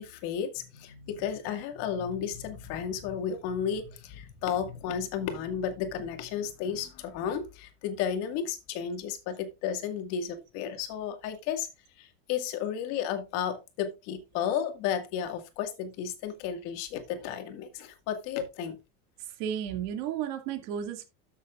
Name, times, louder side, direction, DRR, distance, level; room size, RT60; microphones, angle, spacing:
voice 1, 0.0-11.7 12.0-18.8, left 8 dB, 55° left, 2.0 m, -33 dB
voice 2, 19.4-21.0, right 9 dB, 60° right, 2.4 m, -33 dB
13.0 x 7.0 x 2.5 m
cardioid pair, 160°, 30 cm